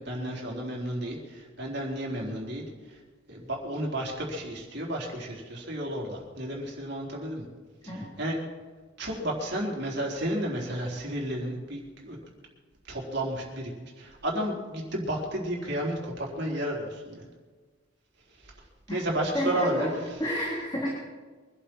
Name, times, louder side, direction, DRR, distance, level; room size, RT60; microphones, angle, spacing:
voice 1, 0.0-3.0 3.3-7.4 7.8-8.4 9.0-12.2 12.8-17.3 18.4-18.5 18.9-19.9, right 1 dB, 60° right, -2 dB, 4.2 m, -32 dB
voice 2, 19.3-19.9 20.2-20.9, equal, 25° left, -4 dB, 3.1 m, -30 dB
24.0 x 11.5 x 4.5 m, 1.4 s
head